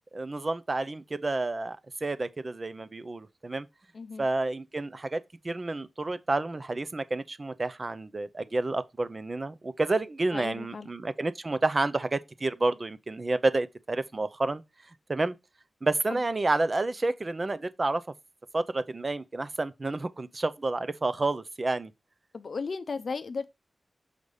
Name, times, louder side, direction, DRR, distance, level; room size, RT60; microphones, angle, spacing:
voice 1, 0.1-3.7 4.2-14.6 15.1-15.3 15.8-18.0 18.5-21.9, right 2 dB, 30° right, 0.5 m, -30 dB
voice 2, 3.9-4.2 10.3-10.9 16.1-16.2 22.3-23.5, left 4 dB, 55° left, 0.5 m, -35 dB
6.5 x 3.3 x 5.4 m
wide cardioid pair, 115°, 0 cm